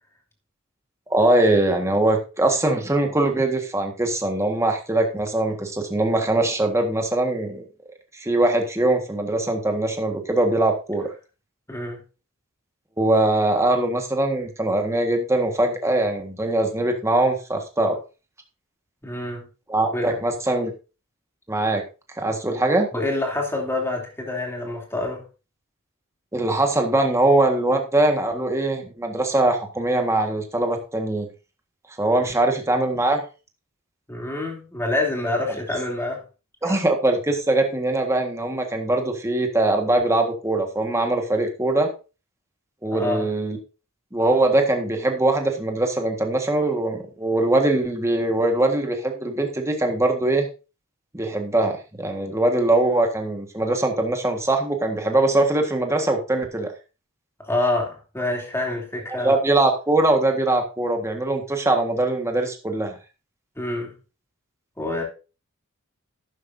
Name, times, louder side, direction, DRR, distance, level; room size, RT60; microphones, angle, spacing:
voice 1, 1.1-7.6 8.1-11.1 13.0-18.0 19.7-20.7 21.5-21.8 22.2-22.9 26.3-31.3 32.0-33.2 36.6-41.9 42.8-43.6 44.1-50.5 51.1-56.7 59.1-62.9, right 2 dB, 15° right, 1.6 m, -22 dB
voice 2, 11.7-12.0 19.0-19.5 19.9-20.2 22.5-22.6 22.9-25.2 32.2-32.3 34.1-36.2 36.6-36.8 42.9-43.3 57.4-59.4 63.6-63.9 64.8-65.0, left 2 dB, 10° left, 3.0 m, -27 dB
12.5 x 9.6 x 2.7 m
head